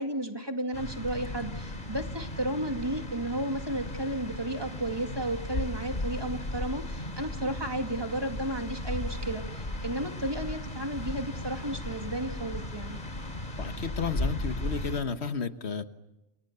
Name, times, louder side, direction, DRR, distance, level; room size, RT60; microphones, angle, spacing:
voice 1, 0.0-13.0, right 1 dB, 20° right, 5 dB, 2.3 m, -33 dB
sound 1, 0.7-15.0, left 1 dB, 50° left, 3.1 m, -36 dB
voice 2, 13.6-15.9, left 5 dB, 80° left, 10 dB, 1.6 m, -32 dB
30.0 x 29.0 x 6.9 m, 0.99 s
omnidirectional pair, 1.1 m